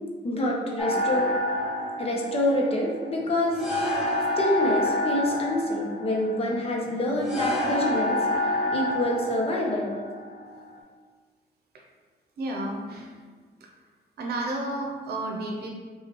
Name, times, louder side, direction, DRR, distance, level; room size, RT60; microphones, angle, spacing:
voice 1, 0.2-1.3 2.0-3.6 4.4-8.2 8.7-9.8, left 1 dB, 35° left, -1 dB, 0.8 m, -26 dB
sound 1, 0.8-10.8, left 1 dB, ahead, 0.9 m, -28 dB
voice 2, 12.4-13.1 14.2-15.7, right 1 dB, 75° right, 0 dB, 0.8 m, -31 dB
5.7 x 2.4 x 3.1 m, 1.5 s
cardioid pair, 130°, 17 cm